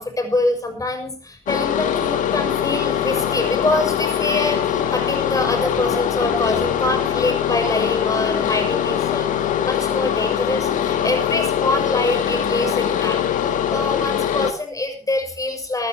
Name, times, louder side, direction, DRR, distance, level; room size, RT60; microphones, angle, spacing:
voice 1, 0.0-13.2 13.7-15.9, left 2 dB, 25° left, 6 dB, 6.4 m, -25 dB
sound 1, 1.5-14.5, left 9 dB, 60° left, 1.7 m, -22 dB
20.0 x 15.0 x 3.0 m, 0.36 s
figure-of-eight pair, 45°, 15 cm